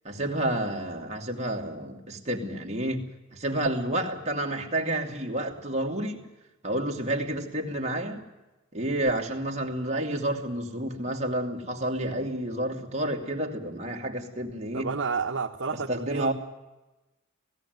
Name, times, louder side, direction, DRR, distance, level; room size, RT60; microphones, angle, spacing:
voice 1, 0.0-3.0 3.3-6.2 6.6-8.2 8.7-14.9 15.9-16.3, right 1 dB, 35° right, 1 dB, 2.5 m, -30 dB
voice 2, 14.7-16.3, right 5 dB, 65° right, 2 dB, 1.1 m, -30 dB
17.5 x 16.0 x 9.3 m, 1.0 s
head